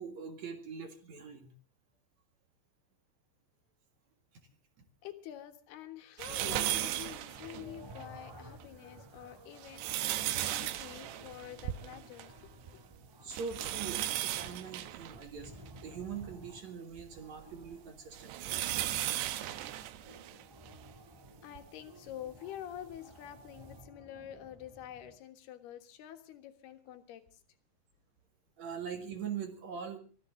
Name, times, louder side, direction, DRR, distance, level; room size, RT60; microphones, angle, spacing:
voice 1, 0.0-1.5 13.2-15.5 15.8-18.4 28.6-30.0, right 6 dB, 50° right, 7 dB, 2.7 m, -42 dB
voice 2, 5.0-12.5 13.2-13.4 21.4-27.4, left 11 dB, 75° left, 8 dB, 3.4 m, -47 dB
sound 1, 6.2-8.0 8.6-8.7 9.4-12.4 12.7-12.8 13.3-16.3 17.0-20.8 21.6-21.7 23.0-23.1, right 13 dB, 85° right, 3.2 m, -36 dB
sound 2, 7.2-25.2, equal, 15° right, 0.7 m, -55 dB
23.5 x 15.0 x 3.8 m, 0.36 s
omnidirectional pair, 4.6 m